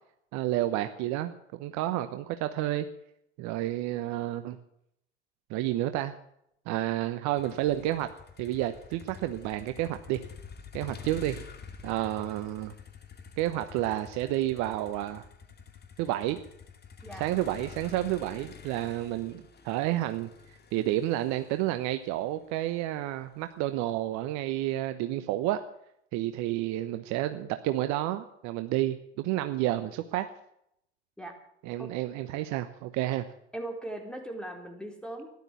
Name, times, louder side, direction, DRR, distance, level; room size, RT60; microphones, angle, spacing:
voice 1, 0.3-2.9 3.4-4.6 5.5-6.1 6.7-8.1 8.4-10.2 10.7-11.4 11.8-12.7 13.4-15.2 16.0-16.4 17.2-20.3 20.7-25.6 26.1-30.3 31.6-33.3, right 14 dB, 60° right, 9 dB, 1.1 m, -30 dB
Motor vehicle (road), 7.4-23.5, left 6 dB, 30° left, 2.3 m, -48 dB
voice 2, 33.5-35.3, right 1 dB, 5° left, 3 dB, 4.0 m, -39 dB
13.5 x 11.5 x 8.5 m, 0.75 s
hypercardioid pair, 80°, 32 cm